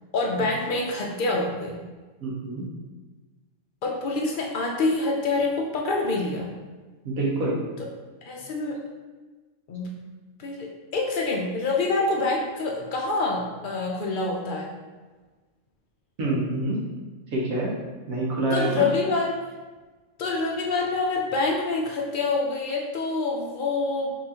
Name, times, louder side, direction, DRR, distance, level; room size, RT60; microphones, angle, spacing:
voice 1, 0.1-1.8 3.8-6.5 8.3-8.8 9.7-9.9 10.4-14.7 18.5-19.4 20.2-24.1, left 3 dB, 80° left, -1 dB, 0.4 m, -26 dB
voice 2, 2.2-2.6 7.0-7.6 16.2-16.8 17.3-17.7 18.1-18.9, right 2 dB, 70° right, -3 dB, 1.4 m, -26 dB
5.4 x 3.0 x 2.8 m, 1.3 s
omnidirectional pair, 1.5 m